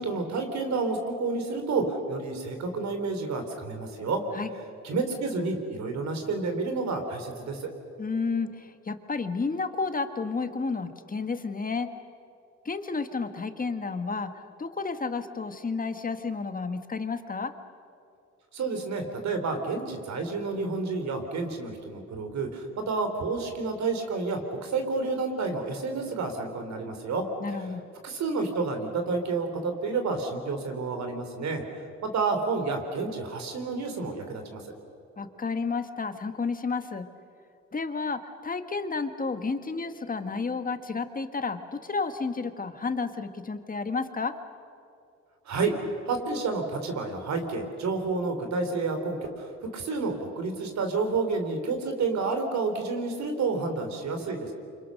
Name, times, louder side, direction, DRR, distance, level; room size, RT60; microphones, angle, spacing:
voice 1, 0.0-4.2 4.8-7.7 18.5-27.6 28.0-31.6 32.0-34.7 45.5-45.7 46.1-54.5, right 3 dB, 65° right, 6 dB, 4.1 m, -30 dB
voice 2, 8.0-11.9 12.6-17.5 27.4-27.8 35.2-37.1 37.7-44.3, left 4 dB, 30° left, 9 dB, 1.7 m, -31 dB
28.5 x 25.5 x 6.6 m, 2.6 s
cardioid pair, 90°, 30 cm